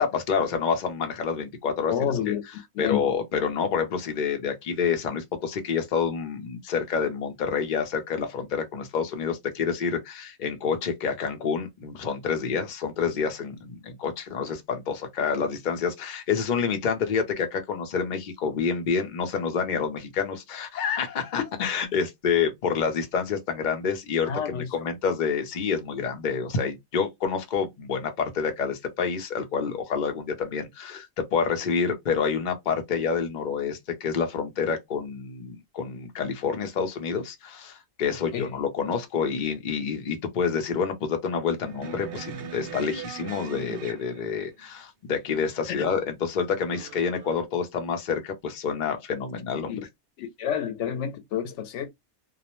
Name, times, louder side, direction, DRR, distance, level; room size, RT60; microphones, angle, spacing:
voice 1, 0.0-1.9 2.3-2.4 2.8-49.8, left 6 dB, 50° left, 0.7 m, -28 dB
voice 2, 1.9-2.4 2.8-3.0 24.3-24.7 38.3-38.5 45.7-45.9 49.7-49.8 50.2-51.9, left 8 dB, 85° left, 0.9 m, -29 dB
sound 1, 41.6-44.6 46.7-47.4, right 5 dB, 60° right, 0.8 m, -40 dB
2.3 x 2.0 x 2.9 m
omnidirectional pair, 1.2 m